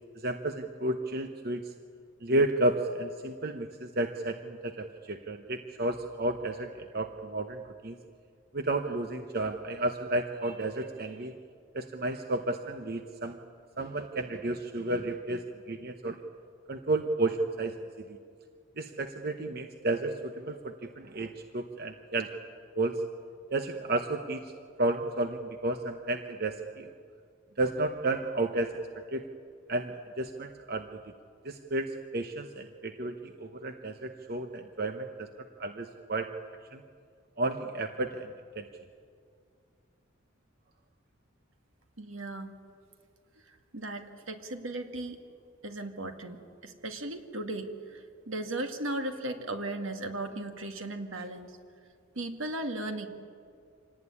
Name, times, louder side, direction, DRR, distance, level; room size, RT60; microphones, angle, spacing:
voice 1, 0.1-1.7 2.2-8.0 8.5-11.4 11.7-13.4 13.8-16.2 16.7-18.2 18.8-22.3 22.8-23.0 23.5-24.5 24.8-26.9 27.6-28.8 29.1-29.3 29.7-31.0 31.4-35.3 35.6-36.3 36.7-36.8 37.4-38.7, right 2 dB, 50° right, 6 dB, 1.0 m, -32 dB
voice 2, 42.0-42.5 43.7-45.2 45.6-51.6 52.2-53.1, right 2 dB, 75° right, 5 dB, 2.2 m, -36 dB
26.0 x 18.5 x 9.8 m, 2.2 s
head